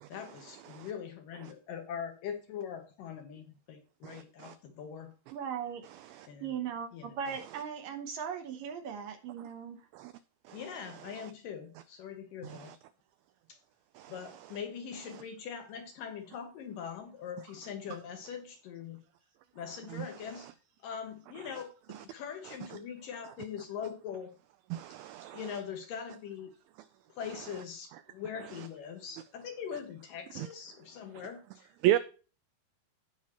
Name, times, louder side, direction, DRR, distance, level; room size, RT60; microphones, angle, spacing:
voice 1, 0.1-5.1 6.3-6.6 6.9-7.2 10.5-12.8 13.5-13.6 14.1-19.0 19.6-20.5 20.8-24.3 25.3-26.5 27.2-31.7, left 7 dB, 70° left, 2.2 m, -42 dB
voice 2, 4.0-4.5 6.1-6.3 9.9-10.1 10.5-10.6 12.4-12.8 14.0-14.1 20.0-20.1 24.7-25.4 30.4-30.5 31.8-32.0, right 13 dB, 90° right, 2.1 m, -32 dB
voice 3, 5.3-5.8 6.4-9.8, right 7 dB, 70° right, 2.2 m, -38 dB
16.0 x 5.5 x 3.0 m
omnidirectional pair, 4.8 m